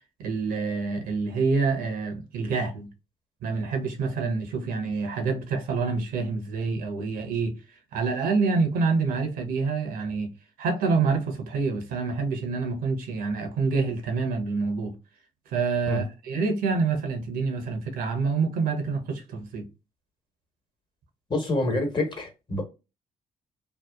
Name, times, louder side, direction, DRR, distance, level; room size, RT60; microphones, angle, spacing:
voice 1, 0.2-2.9 3.4-7.5 7.9-10.3 10.6-15.0 15.5-19.7, right 4 dB, 75° right, 0.7 m, -27 dB
voice 2, 21.3-22.6, left 2 dB, 30° left, 1.1 m, -27 dB
2.7 x 2.1 x 2.2 m
supercardioid pair, 55°, 15 cm